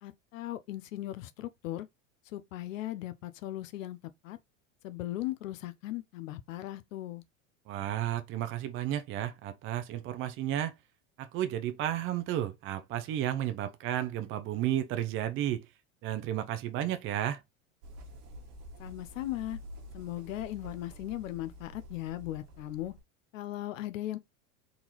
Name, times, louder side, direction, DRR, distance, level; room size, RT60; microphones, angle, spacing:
voice 1, 0.0-1.9 2.3-4.4 4.8-7.2 18.8-19.6 19.9-22.9 23.3-24.2, left 15 dB, 85° left, 0.6 m, -38 dB
voice 2, 7.7-10.7 11.2-15.7 16.0-17.4, right 12 dB, 35° right, 0.4 m, -32 dB
sound 1, 17.8-23.0, equal, 50° right, 1.3 m, -48 dB
3.8 x 2.4 x 3.0 m
hypercardioid pair, 100°, 38 cm